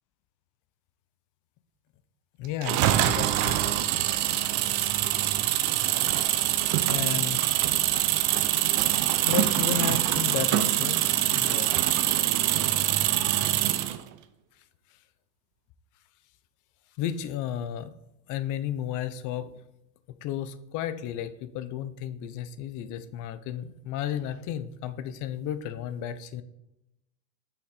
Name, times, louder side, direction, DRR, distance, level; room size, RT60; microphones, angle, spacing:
voice 1, 2.4-3.7 6.9-7.4 9.3-11.7 17.0-17.9 18.3-19.6 20.1-26.4, left 10 dB, 40° left, 13 dB, 0.7 m, -33 dB
sound 1, 2.6-14.0, right 13 dB, 40° right, 0.6 m, -24 dB
8.1 x 5.9 x 4.1 m, 0.85 s
supercardioid pair, 130°, 49 cm